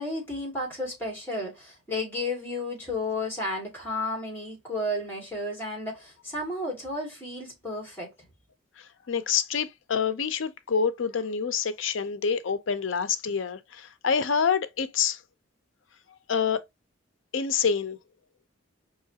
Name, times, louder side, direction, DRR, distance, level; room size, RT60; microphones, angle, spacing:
voice 1, 0.0-8.1, left 1 dB, 10° left, 2.2 m, -32 dB
voice 2, 8.8-15.2 16.3-16.6 17.3-18.0, left 6 dB, 75° left, 0.5 m, -27 dB
4.8 x 3.0 x 2.8 m
head